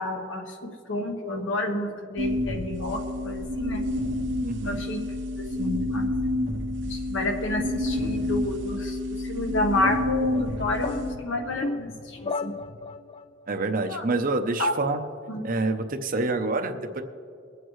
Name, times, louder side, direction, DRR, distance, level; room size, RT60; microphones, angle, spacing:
voice 1, 0.0-3.8 4.6-5.0 5.6-6.1 6.9-12.5 13.9-14.0 14.6-14.7 15.3-15.4, left 2 dB, 70° left, 3 dB, 1.3 m, -30 dB
sound 1, 2.2-11.2, left 1 dB, 65° right, 1.0 m, -29 dB
voice 2, 4.4-4.8 13.5-15.0 15.4-17.0, right 3 dB, 45° right, 6 dB, 0.7 m, -27 dB
sound 2, 9.8-13.3, left 3 dB, 30° left, 0.3 m, -34 dB
22.5 x 8.2 x 3.2 m, 2.3 s
head